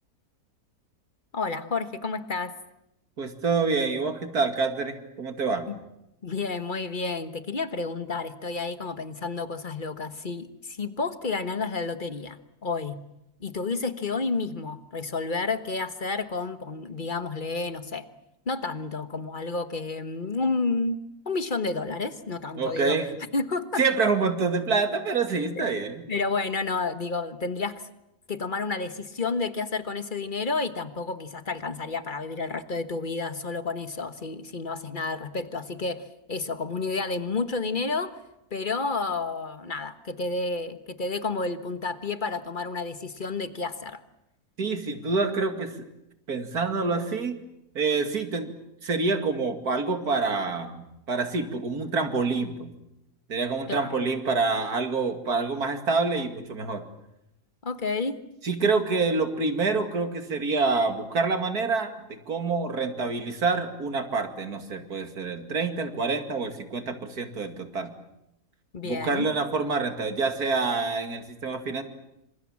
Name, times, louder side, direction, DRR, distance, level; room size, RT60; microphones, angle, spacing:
voice 1, 1.3-2.6 5.7-5.8 6.2-13.0 13.4-18.0 18.5-21.0 21.2-23.0 23.3-23.8 26.1-27.8 28.3-38.2 38.5-44.0 53.7-54.1 57.6-58.2 68.7-69.3, left 3 dB, 30° left, 10 dB, 1.4 m, -30 dB
voice 2, 3.2-5.7 22.6-23.1 23.8-26.0 44.6-45.8 46.3-47.4 47.7-48.5 48.8-52.7 53.3-56.8 58.4-67.9 68.8-71.8, right 4 dB, 70° right, 7 dB, 2.9 m, -27 dB
27.0 x 26.5 x 7.4 m, 0.85 s
omnidirectional pair, 1.7 m